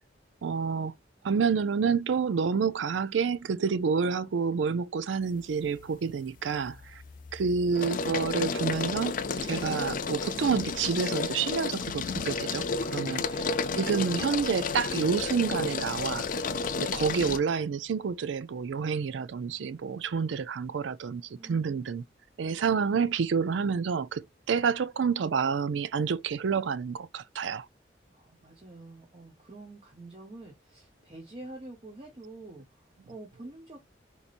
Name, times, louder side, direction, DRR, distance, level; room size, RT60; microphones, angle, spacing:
voice 1, 0.4-0.9 1.2-7.0 7.3-9.2 9.4-13.2 13.8-16.3 16.8-22.0 22.4-27.7, right 6 dB, 80° right, 0.4 m, -29 dB
sound 1, 5.4-5.9 6.3-17.4, left 4 dB, 45° left, 0.4 m, -32 dB
voice 2, 13.3-13.7 21.4-21.9 28.1-33.8, right 2 dB, 30° right, 0.8 m, -47 dB
4.6 x 2.8 x 2.4 m
head